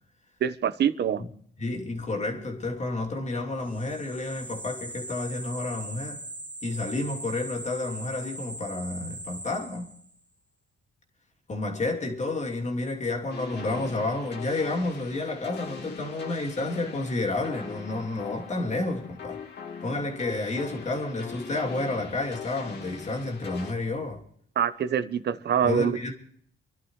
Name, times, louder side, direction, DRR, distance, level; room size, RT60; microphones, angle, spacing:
voice 1, 0.4-1.2 24.6-26.0, right 8 dB, 55° right, 1.0 m, -25 dB
voice 2, 1.6-6.2 6.6-9.9 11.5-19.4 19.8-24.2 25.6-26.1, left 2 dB, 35° left, 3.0 m, -30 dB
sound 1, 3.7-10.2, right 1 dB, 10° left, 2.0 m, -40 dB
sound 2, 13.3-23.7, left 6 dB, 55° left, 2.3 m, -41 dB
28.5 x 11.5 x 3.2 m
cardioid pair, 90°, 20 cm